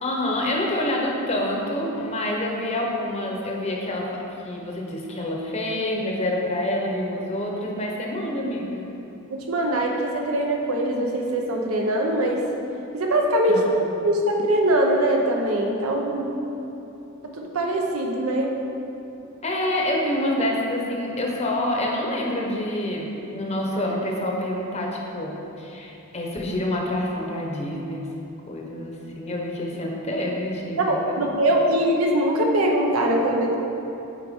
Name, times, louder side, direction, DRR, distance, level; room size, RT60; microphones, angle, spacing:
voice 1, 0.0-8.8 13.5-13.8 19.4-28.1 28.5-31.3, left 1 dB, 30° left, -1 dB, 0.8 m, -27 dB
voice 2, 9.3-12.4 12.9-13.6 14.0-16.3 17.4-18.5 30.8-33.6, right 1 dB, 90° right, 0 dB, 0.8 m, -22 dB
8.2 x 4.5 x 3.6 m, 2.9 s
head